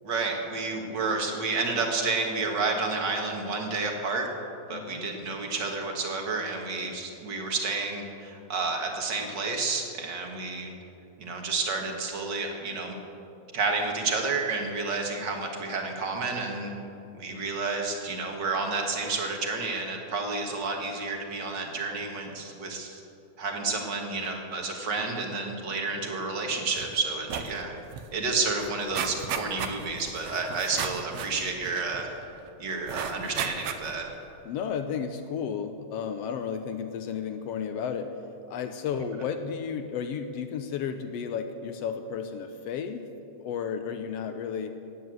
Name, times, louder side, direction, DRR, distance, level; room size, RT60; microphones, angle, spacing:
voice 1, 0.0-4.3 4.7-10.7 11.2-13.0 13.5-16.7 17.1-23.0 23.4-27.7 28.1-32.1 32.6-34.1, right 3 dB, 40° right, 2 dB, 1.9 m, -30 dB
sound 1, 26.8-26.9 27.2-27.6 27.9-28.0 28.3-32.3 32.9-34.1 34.6-34.7, right 8 dB, 70° right, 2.0 m, -35 dB
voice 2, 34.4-38.2 38.5-43.1 43.4-44.8, left 7 dB, 80° left, 8 dB, 1.4 m, -33 dB
16.5 x 10.0 x 7.8 m, 2.7 s
omnidirectional pair, 3.5 m